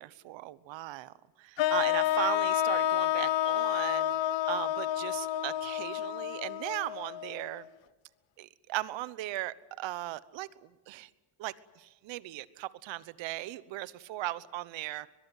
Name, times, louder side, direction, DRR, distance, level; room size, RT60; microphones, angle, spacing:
voice 1, 0.0-4.1 4.5-7.7 8.4-11.1 11.4-15.1, right 16 dB, 80° right, 17 dB, 1.1 m, -38 dB
sound 1, 1.6-7.6, left 12 dB, 80° left, 1.1 m, -30 dB
23.0 x 22.0 x 9.3 m, 1.2 s
cardioid pair, 90°, 45 cm